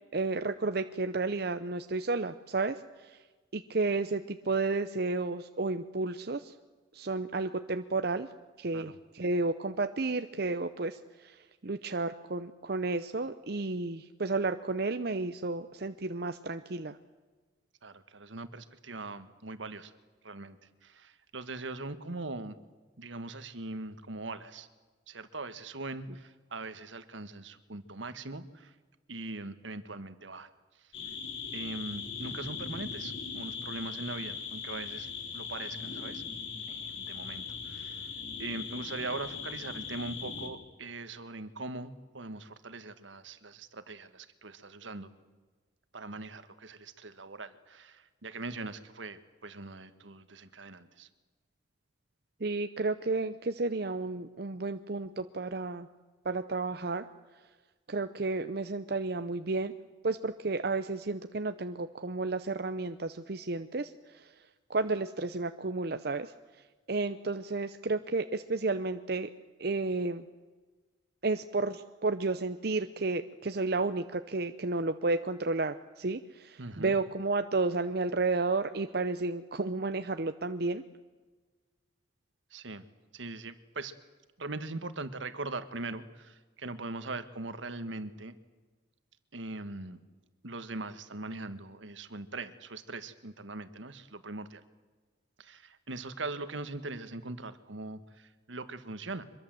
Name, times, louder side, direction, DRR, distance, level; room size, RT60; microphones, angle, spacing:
voice 1, 0.1-3.2 3.5-6.5 6.9-8.3 8.6-17.0 52.4-55.9 56.2-57.1 57.9-59.7 60.0-69.3 69.6-70.3 71.2-80.8, right 3 dB, 55° right, 9 dB, 0.8 m, -32 dB
voice 2, 17.8-19.9 20.2-20.6 20.8-22.6 23.0-24.7 25.1-28.7 29.1-30.5 30.7-30.9 31.5-36.2 36.7-38.1 38.4-45.1 45.9-51.1 76.6-77.0 82.5-82.8 83.1-83.9 84.4-88.4 89.3-90.0 90.4-94.6 95.4-99.2, right 2 dB, 80° right, 12 dB, 1.6 m, -41 dB
sound 1, 30.9-40.5, left 6 dB, 80° left, 3.8 m, -39 dB
24.5 x 22.0 x 7.7 m, 1.3 s
head